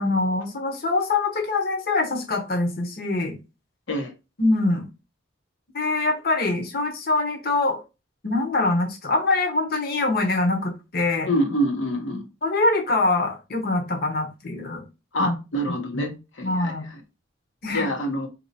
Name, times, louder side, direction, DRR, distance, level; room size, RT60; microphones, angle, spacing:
voice 1, 0.0-3.4 4.4-4.9 5.7-7.8 8.2-11.3 12.4-14.8 15.2-15.4 15.9-16.0 16.4-16.9 17.6-17.9, left 2 dB, 50° left, 1.0 m, -24 dB
voice 2, 11.3-12.3 15.1-16.1 16.4-16.7 17.7-18.3, equal, 75° left, 1.0 m, -26 dB
4.1 x 2.9 x 4.1 m
head